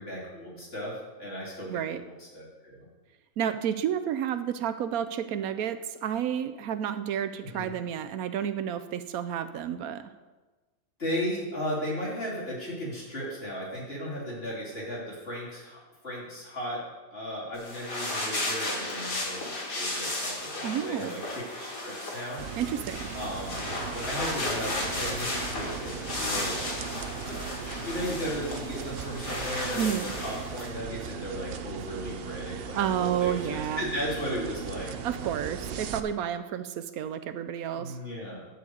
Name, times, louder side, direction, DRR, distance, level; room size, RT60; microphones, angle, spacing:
voice 1, 0.0-2.9 7.5-7.7 11.0-16.8 17.1-19.5 19.7-22.4 23.1-23.6 23.9-26.7 27.2-29.9 30.2-34.9 37.7-38.4, equal, 40° left, -6 dB, 3.6 m, -36 dB
voice 2, 1.7-2.0 3.4-10.1 20.6-21.1 22.6-23.1 29.8-30.1 32.6-33.8 35.0-38.0, right 9 dB, 85° right, 10 dB, 1.1 m, -31 dB
sound 1, 17.5-30.7, left 2 dB, 70° left, 2.6 m, -34 dB
sound 2, 22.4-36.0, right 6 dB, 60° right, 0.6 m, -38 dB
11.0 x 4.8 x 8.0 m, 1.2 s
omnidirectional pair, 1.5 m